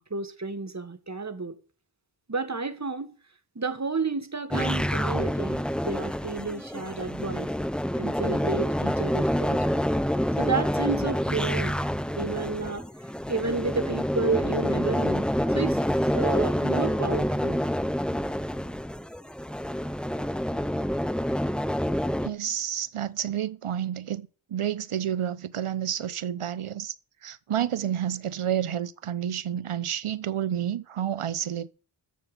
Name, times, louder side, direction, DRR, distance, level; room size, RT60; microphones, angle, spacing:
voice 1, 0.0-1.6 2.3-3.1 3.6-7.5 8.0-9.7 10.4-11.8 12.1-12.9 13.3-15.2 15.5-15.8 16.1-17.6, right 4 dB, 35° right, 1.8 m, -31 dB
sound 1, 4.5-22.3, equal, ahead, 0.6 m, -27 dB
voice 2, 22.2-26.9 27.2-31.7, right 10 dB, 85° right, 0.9 m, -30 dB
10.5 x 7.0 x 8.2 m
cardioid pair, 45°, 49 cm